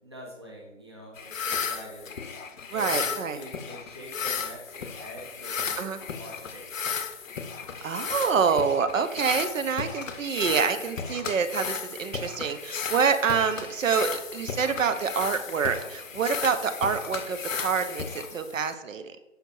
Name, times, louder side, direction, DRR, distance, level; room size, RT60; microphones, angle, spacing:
voice 1, 0.0-6.7, right 1 dB, 25° right, -2 dB, 0.4 m, -45 dB
sound 1, 1.2-18.7, left 6 dB, 90° left, 0.5 m, -34 dB
voice 2, 2.7-3.4 5.8-6.0 7.8-19.1, right 6 dB, 85° right, 9 dB, 0.5 m, -27 dB
5.0 x 3.0 x 2.6 m, 0.97 s
figure-of-eight pair, 150°, 38 cm